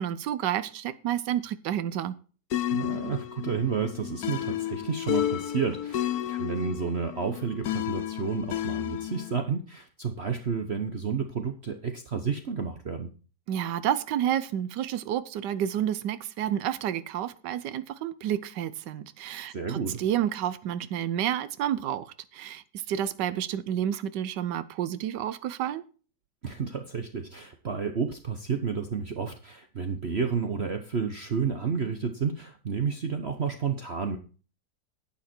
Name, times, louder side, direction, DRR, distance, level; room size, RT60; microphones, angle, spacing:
voice 1, 0.0-2.1 13.5-22.0 22.3-25.8, right 10 dB, 85° right, 14 dB, 1.4 m, -30 dB
sound 1, 2.5-9.4, left 12 dB, 70° left, 1.2 m, -32 dB
voice 2, 2.7-13.1 19.5-20.0 26.4-34.2, right 6 dB, 45° right, 6 dB, 1.1 m, -31 dB
11.5 x 8.9 x 4.4 m, 0.36 s
omnidirectional pair, 1.8 m